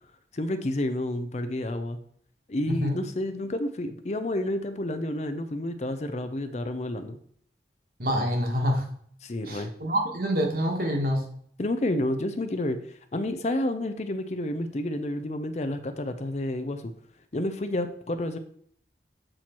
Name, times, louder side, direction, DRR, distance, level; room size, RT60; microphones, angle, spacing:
voice 1, 0.3-2.0 2.5-7.2 9.2-9.7 11.6-16.9 17.3-18.4, left 1 dB, 40° left, 9 dB, 0.5 m, -30 dB
voice 2, 2.7-3.0 8.0-8.8 9.5-11.2, equal, 55° right, 2 dB, 1.4 m, -26 dB
7.6 x 4.4 x 4.4 m, 0.62 s
head